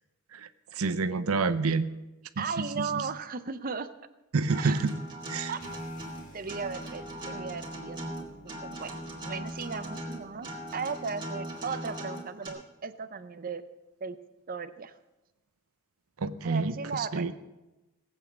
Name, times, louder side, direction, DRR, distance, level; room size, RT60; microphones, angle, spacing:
voice 1, 0.3-1.9 2.4-3.1 4.3-5.0 5.3-5.5 16.2-17.3, right 4 dB, 75° right, 13 dB, 0.7 m, -29 dB
voice 2, 2.4-3.9 4.6-4.8 5.5-5.6 6.3-8.9 9.2-13.6 14.0-14.2 14.5-14.9 16.4-17.3, right 5 dB, 40° right, 10 dB, 0.6 m, -36 dB
Acoustic guitar, 4.5-12.5, right 1 dB, 20° right, 2.7 m, -39 dB
sound 1, 5.6-11.7, equal, 35° left, 2.0 m, -53 dB
18.5 x 8.2 x 7.4 m, 1.0 s
head